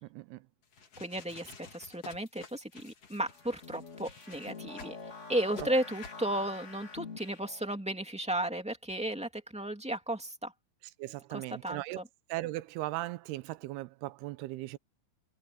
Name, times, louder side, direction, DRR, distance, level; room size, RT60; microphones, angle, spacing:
voice 1, 0.0-0.4 5.6-5.7 11.0-12.0 12.3-14.8, right 17 dB, 85° right, 2.8 m, -38 dB
sound 1, 0.6-5.0 5.5-5.7 6.0-6.2, left 5 dB, 40° left, 3.2 m, -50 dB
voice 2, 1.0-4.9 5.3-10.5 11.3-12.0, right 1 dB, 5° right, 1.4 m, -34 dB
sound 2, 3.3-7.7, left 4 dB, 20° left, 2.1 m, -46 dB
omnidirectional pair, 4.6 m